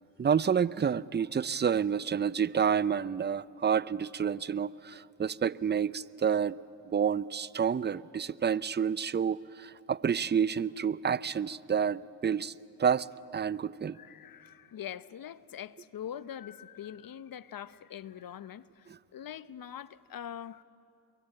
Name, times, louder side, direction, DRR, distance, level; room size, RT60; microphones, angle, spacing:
voice 1, 0.2-6.6 6.9-12.5 12.8-13.1 13.3-14.0 18.9-19.0, right 7 dB, 20° right, 0.6 m, -29 dB
voice 2, 13.9-20.6, left 9 dB, 45° left, 1.0 m, -43 dB
29.0 x 22.5 x 8.9 m
hypercardioid pair, 55°, 49 cm